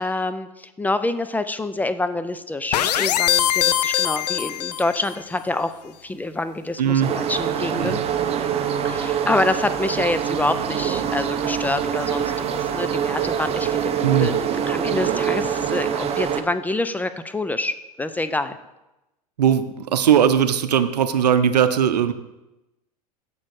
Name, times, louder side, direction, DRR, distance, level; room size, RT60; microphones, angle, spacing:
voice 1, 0.0-8.0 8.8-14.3 14.7-18.6, left 2 dB, 10° left, 11 dB, 0.3 m, -26 dB
sound 1, 2.7-5.2, left 11 dB, 85° left, 0.4 m, -22 dB
voice 2, 6.8-7.1 7.7-8.0 14.0-14.3 19.4-22.1, right 9 dB, 90° right, 12 dB, 0.6 m, -19 dB
sound 2, 7.0-16.4, right 8 dB, 30° right, 0.7 m, -24 dB
7.3 x 6.5 x 4.8 m, 0.97 s
hypercardioid pair, 105°, 20 cm